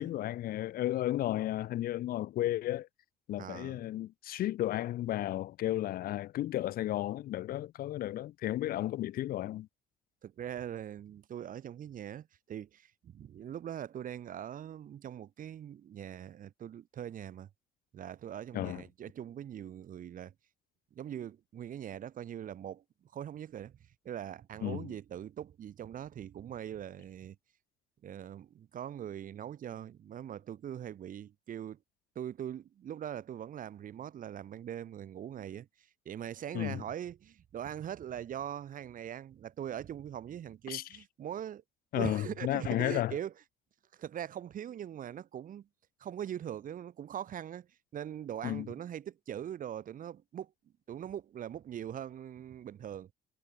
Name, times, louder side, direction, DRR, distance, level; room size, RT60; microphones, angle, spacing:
voice 1, 0.0-2.9 3.3-9.7 18.5-18.8 24.6-24.9 36.5-36.8 40.7-40.8 41.9-43.2 48.4-48.7, left 14 dB, 60° left, 0.7 m, -33 dB
voice 2, 3.4-3.8 10.2-17.5 17.9-20.3 20.9-23.8 24.0-27.4 28.0-31.8 32.2-41.6 41.9-43.3 43.9-45.7 46.0-50.5 50.9-53.1, right 10 dB, 55° right, 3.9 m, -42 dB
cardioid pair, 110°, 17 cm